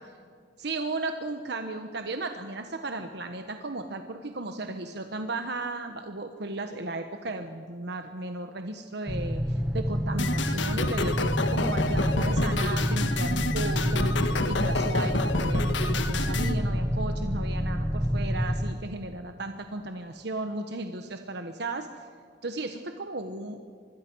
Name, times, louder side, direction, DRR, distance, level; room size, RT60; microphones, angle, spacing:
voice 1, 0.6-21.9 22.4-23.6, right 2 dB, 65° right, 6 dB, 1.2 m, -35 dB
sound 1, 9.1-18.7, equal, 5° right, 1.1 m, -28 dB
sound 2, 10.2-16.5, left 2 dB, 85° left, 1.5 m, -29 dB
25.5 x 21.5 x 6.3 m, 2.2 s
head